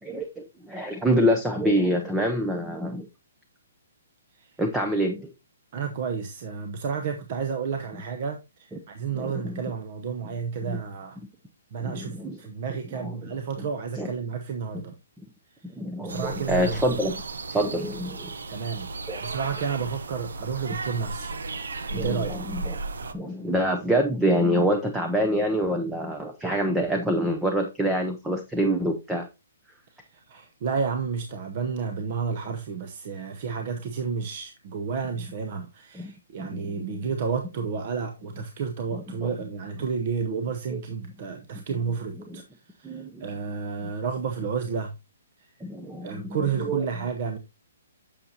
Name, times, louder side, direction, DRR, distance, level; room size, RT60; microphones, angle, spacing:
voice 1, 0.0-3.1 4.6-5.3 9.1-9.6 10.7-10.8 11.8-12.4 12.9-13.3 13.6-13.7 14.0-14.1 15.8-17.2 17.5-18.3 19.1-19.2 21.9-22.8 23.1-29.3 35.9-36.1 36.4-37.0 38.9-39.3 40.7-40.8 42.3-42.4 42.8-43.2 45.6-46.9, equal, 5° right, 0.6 m, -26 dB
voice 2, 5.7-11.2 11.7-14.9 16.0-17.0 18.5-18.9 19.2-21.3 21.9-22.3 29.9-42.4 42.8-44.9 45.4-45.5 46.0-47.4, right 6 dB, 40° right, 0.8 m, -31 dB
sound 1, 16.1-23.1, right 3 dB, 90° right, 0.9 m, -34 dB
8.4 x 6.6 x 2.8 m
hypercardioid pair, 165°, 0 cm